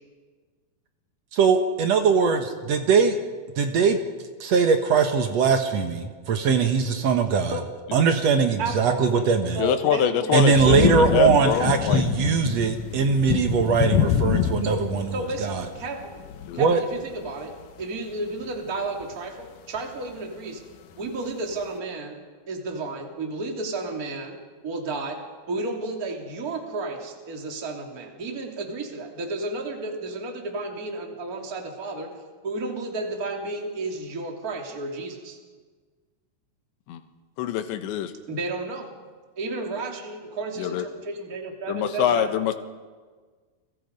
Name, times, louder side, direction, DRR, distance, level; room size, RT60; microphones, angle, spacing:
voice 1, 1.3-3.2 3.6-4.0 4.4-7.6 7.9-9.6 10.3-15.1 15.4-15.6 16.6-16.8, right 5 dB, 75° right, 6 dB, 1.5 m, -21 dB
voice 2, 8.6-9.3 9.5-10.3 14.6-14.8 15.1-16.2 16.5-17.5 17.8-20.6 21.0-22.1 22.5-24.4 24.6-25.2 25.5-32.1 32.4-35.4 38.3-38.9 39.4-42.3, right 2 dB, 25° right, 2 dB, 2.7 m, -32 dB
voice 3, 9.6-12.0 16.5-16.7 36.9-37.0 37.4-38.1 40.6-40.9 41.7-42.6, left 9 dB, 85° left, 8 dB, 3.5 m, -25 dB
sound 1, 10.5-16.7 17.0-17.4 17.8-17.9 18.4-18.5 19.0-19.1 19.8-19.9, left 10 dB, 70° left, 2.3 m, -26 dB
30.0 x 23.5 x 5.3 m, 1.5 s
omnidirectional pair, 5.0 m